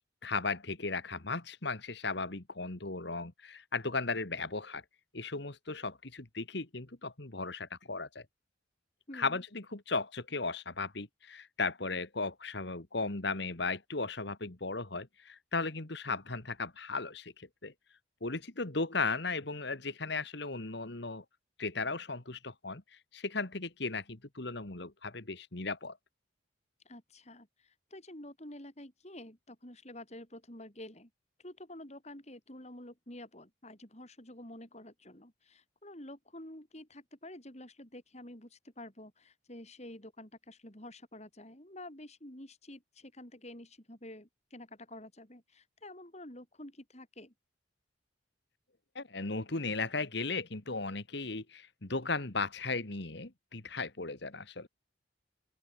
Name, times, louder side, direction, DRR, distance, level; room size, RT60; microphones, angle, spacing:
voice 1, 0.2-4.8 5.1-8.3 9.1-17.7 18.2-21.2 21.6-22.8 23.1-26.0 49.0-54.7, left 3 dB, 55° left, 1.8 m, -36 dB
voice 2, 9.1-9.4 26.8-31.1 31.4-47.3, left 1 dB, 35° left, 4.0 m, -49 dB
open air
head